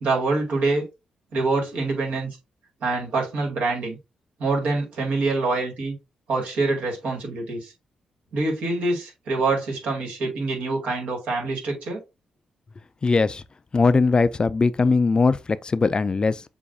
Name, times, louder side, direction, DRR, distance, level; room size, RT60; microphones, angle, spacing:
voice 1, 0.0-0.8 1.3-2.3 2.8-4.0 4.4-5.9 6.3-7.7 8.3-12.0, right 3 dB, 75° right, 2.0 m, -25 dB
voice 2, 13.0-13.4 13.7-16.4, left 4 dB, 35° left, 0.3 m, -20 dB
6.9 x 2.5 x 2.6 m
supercardioid pair, 55°, 2 cm